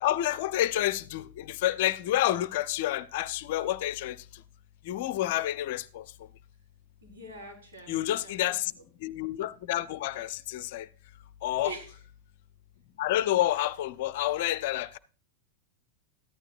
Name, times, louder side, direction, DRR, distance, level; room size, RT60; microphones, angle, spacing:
voice 1, 0.0-4.2 4.9-6.0 7.9-8.7 9.0-10.9 11.4-11.7 13.0-15.0, left 14 dB, 50° left, 0.5 m, -29 dB
voice 2, 7.0-8.5 11.6-11.9, equal, 65° right, 4.3 m, -43 dB
14.0 x 11.5 x 2.5 m
figure-of-eight pair, 90°, 0 cm